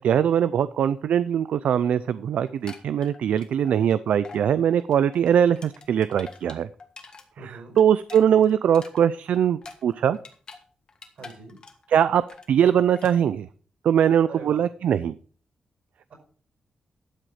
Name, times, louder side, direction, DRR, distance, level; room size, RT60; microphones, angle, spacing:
voice 1, 0.0-6.7 7.8-10.2 11.9-13.5 13.8-15.2, right 9 dB, 80° right, 15 dB, 0.4 m, -21 dB
sound 1, 2.5-3.9 4.2-4.4 4.8-7.2 7.6-10.6 10.9-11.9 12.1-12.5 12.9-13.1, left 4 dB, 35° left, 1.7 m, -45 dB
voice 2, 7.4-7.8 11.1-11.6 14.3-14.6 16.1-16.2, right 4 dB, 60° right, 4 dB, 5.1 m, -42 dB
12.0 x 7.7 x 4.9 m, 0.43 s
wide cardioid pair, 180°, 2 cm